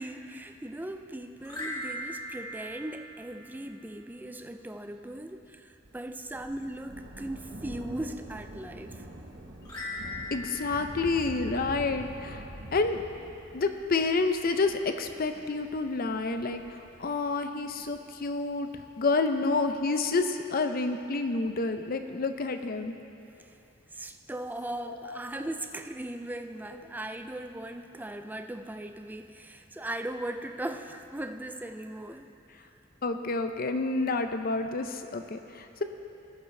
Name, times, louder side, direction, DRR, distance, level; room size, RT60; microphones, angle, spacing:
voice 1, 0.0-9.1 23.4-23.5 23.9-32.3, right 1 dB, 10° right, 7 dB, 0.4 m, -38 dB
sound 1, 1.4-3.9 9.6-12.2, left 1 dB, 20° left, 2.3 m, -40 dB
Thunder, 5.8-18.7 19.6-19.7, right 1 dB, 60° right, 1.1 m, -45 dB
voice 2, 10.3-12.4 12.7-13.0 13.5-22.9 24.9-25.2 33.0-35.8, left 3 dB, 50° left, 7 dB, 0.6 m, -29 dB
19.0 x 7.1 x 3.3 m, 2.8 s
head